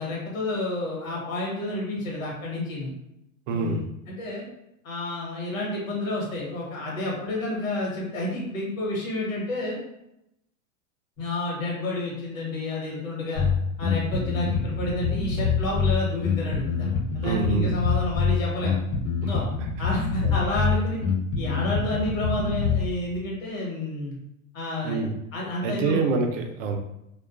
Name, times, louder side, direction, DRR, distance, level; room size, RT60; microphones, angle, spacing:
voice 1, 0.0-2.9 3.5-4.4 4.8-9.8 11.2-13.4 13.8-18.8 19.3-19.4 19.8-21.0 21.4-24.1 24.5-25.0 25.3-26.1, left 1 dB, 80° left, -3 dB, 1.2 m, -30 dB
voice 2, 3.5-3.8 17.2-17.7 19.2-19.3 20.2-20.4 24.8-25.1 25.6-26.8, right 4 dB, 70° right, 5 dB, 0.6 m, -26 dB
Bass guitar, 13.3-22.9, left 5 dB, 55° left, 0.8 m, -25 dB
2.3 x 2.2 x 2.4 m, 0.82 s
hypercardioid pair, 110°, 39 cm